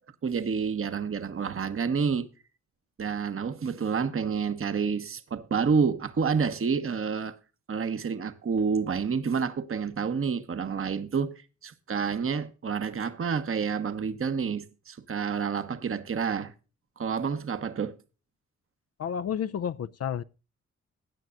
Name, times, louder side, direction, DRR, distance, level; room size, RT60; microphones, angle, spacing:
voice 1, 0.2-2.3 3.0-7.4 7.7-11.3 11.6-16.5 17.0-17.9, right 6 dB, 45° right, 1.1 m, -29 dB
voice 2, 19.0-20.2, left 8 dB, 55° left, 0.5 m, -31 dB
17.0 x 9.3 x 2.5 m
cardioid pair, 60°, 30 cm